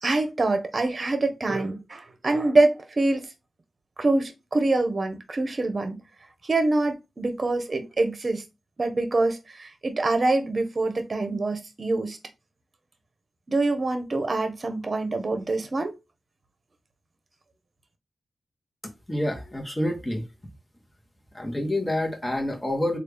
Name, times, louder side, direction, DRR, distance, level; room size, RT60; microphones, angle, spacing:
voice 1, 0.0-3.3 4.0-6.0 6.4-8.4 8.8-12.2 13.5-15.9, right 2 dB, 45° right, 0.8 m, -25 dB
voice 2, 19.1-20.2 21.3-23.0, left 1 dB, 15° left, 1.1 m, -27 dB
3.2 x 2.4 x 3.4 m
cardioid pair, 65°, 0 cm